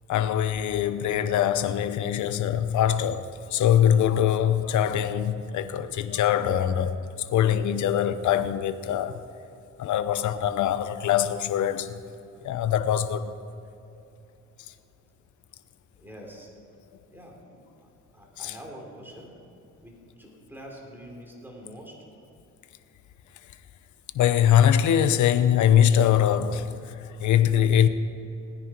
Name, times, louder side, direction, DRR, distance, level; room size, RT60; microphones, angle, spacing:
voice 1, 0.1-7.0 7.3-9.2 9.8-11.9 12.4-13.3 18.4-18.6 24.1-27.9, left 9 dB, 75° left, 0.8 m, -23 dB
voice 2, 16.0-16.5 17.1-19.4 19.8-22.0, equal, 5° right, 3.9 m, -45 dB
18.5 x 10.0 x 4.6 m
cardioid pair, 90°, 30 cm